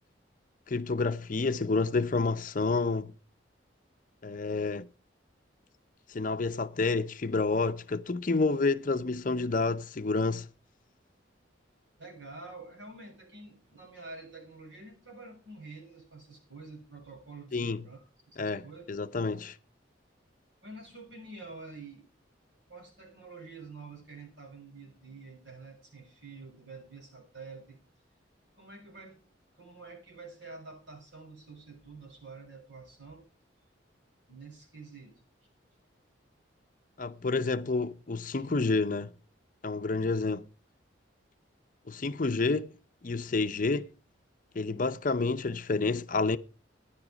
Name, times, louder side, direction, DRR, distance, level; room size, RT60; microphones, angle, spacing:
voice 1, 0.7-3.1 4.2-4.9 6.1-10.5 17.5-17.8 18.4-18.6 18.9-19.6 37.0-39.1 39.6-40.5 41.9-42.7 43.0-43.9 44.5-46.4, left 3 dB, 45° left, 0.6 m, -29 dB
voice 2, 12.0-18.8 20.6-22.1 22.7-27.8 28.5-29.2 29.5-33.2 34.3-35.2 38.4-38.5, right 3 dB, 75° right, 7.1 m, -48 dB
14.0 x 10.5 x 5.0 m
head